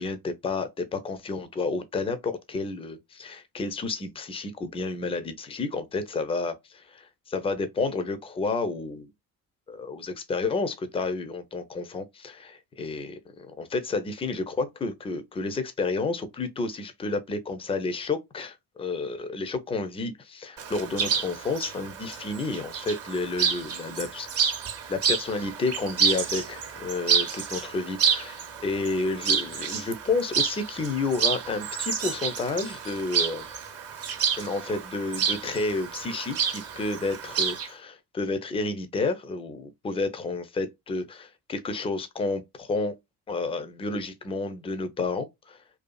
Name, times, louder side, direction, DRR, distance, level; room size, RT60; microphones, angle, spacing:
voice 1, 0.0-9.1 9.7-24.5 24.9-33.5 34.4-42.9 43.3-45.6, left 3 dB, 15° left, 0.4 m, -30 dB
Chirp tweet, 20.6-37.7, right 7 dB, 30° right, 0.6 m, -29 dB
2.6 x 2.4 x 2.2 m
hypercardioid pair, 50°, 49 cm